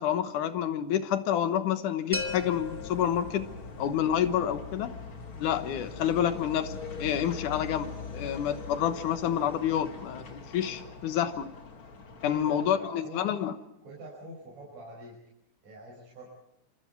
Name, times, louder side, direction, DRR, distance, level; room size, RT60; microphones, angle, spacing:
voice 1, 0.0-4.9 5.4-11.5 12.2-13.5, left 9 dB, 90° left, 9 dB, 2.8 m, -28 dB
sound 1, 2.1-12.7, left 4 dB, 45° left, 2.9 m, -42 dB
sound 2, 2.1-4.0, left 3 dB, 5° right, 2.0 m, -37 dB
voice 2, 12.2-13.3 13.8-15.2 15.6-16.3, right 1 dB, 65° right, -3 dB, 7.0 m, -45 dB
27.0 x 27.0 x 4.7 m, 0.79 s
omnidirectional pair, 3.4 m